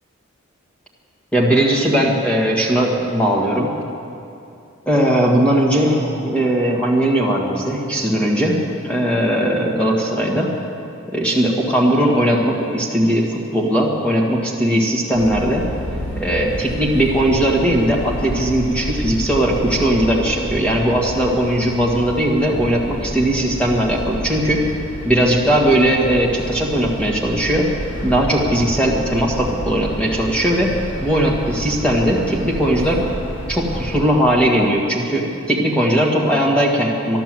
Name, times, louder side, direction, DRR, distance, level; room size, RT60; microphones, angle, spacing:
voice 1, 1.3-3.7 4.9-8.6 8.8-10.5 11.1-15.7 16.2-24.6 25.0-27.7 28.0-33.1 33.5-37.2, right 1 dB, 5° left, -3 dB, 1.8 m, -18 dB
sound 1, 15.1-34.0, equal, 80° left, 3.8 m, -30 dB
13.0 x 11.5 x 7.7 m, 2.7 s
head